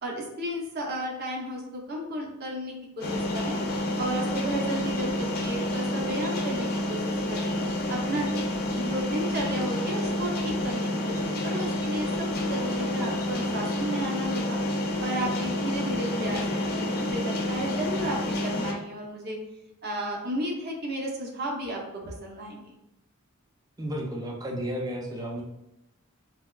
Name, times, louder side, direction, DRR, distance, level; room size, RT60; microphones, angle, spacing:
voice 1, 0.0-3.6 4.0-7.5 7.9-8.4 8.7-12.1 12.4-14.6 15.0-19.4 19.8-22.7, right 1 dB, 50° right, -1 dB, 0.7 m, -33 dB
sound 1, 3.0-18.7, left 1 dB, 45° left, 0.5 m, -29 dB
voice 2, 23.8-25.4, equal, 15° right, 0 dB, 0.5 m, -32 dB
4.3 x 2.2 x 2.3 m, 0.86 s
head